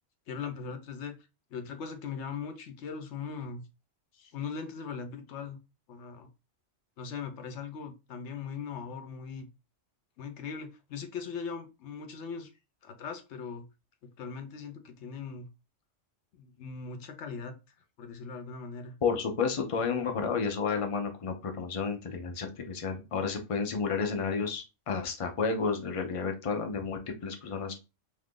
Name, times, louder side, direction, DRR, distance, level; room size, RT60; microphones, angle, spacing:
voice 1, 0.3-1.2 1.5-3.6 4.1-5.6 5.9-6.3 7.0-9.5 10.2-12.5 12.8-13.6 14.2-15.5 16.3-17.6 18.0-18.9, left 6 dB, 70° left, 6 dB, 0.9 m, -39 dB
voice 2, 19.0-27.8, left 5 dB, 45° left, 4 dB, 0.4 m, -31 dB
2.8 x 2.5 x 3.5 m, 0.28 s
omnidirectional pair, 1.3 m